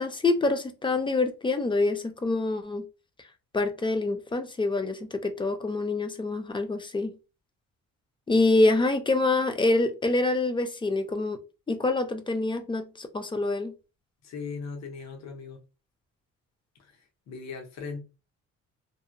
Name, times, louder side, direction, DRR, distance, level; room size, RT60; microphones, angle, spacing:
voice 1, 0.0-2.8 3.5-7.1 8.3-11.4 11.7-13.7, left 2 dB, 15° left, 0.5 m, -26 dB
voice 2, 14.2-15.6 16.8-18.0, left 5 dB, 65° left, 0.8 m, -39 dB
2.9 x 2.1 x 2.5 m
cardioid pair, 90°, 30 cm